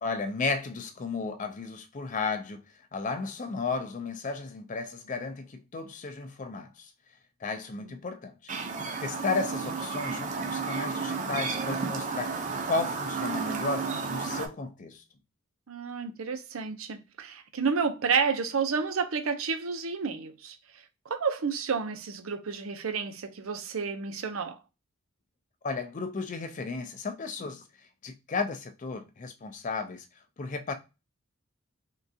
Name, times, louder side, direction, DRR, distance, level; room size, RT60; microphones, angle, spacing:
voice 1, 0.0-2.6 2.9-6.9 7.4-15.0 25.6-30.1 30.4-30.7, left 4 dB, 35° left, 0.4 m, -34 dB
Chirp tweet, 8.5-14.5, right 4 dB, 35° right, 0.5 m, -32 dB
voice 2, 15.7-20.6 21.1-24.6, right 5 dB, 80° right, 0.6 m, -30 dB
3.6 x 2.3 x 2.7 m
head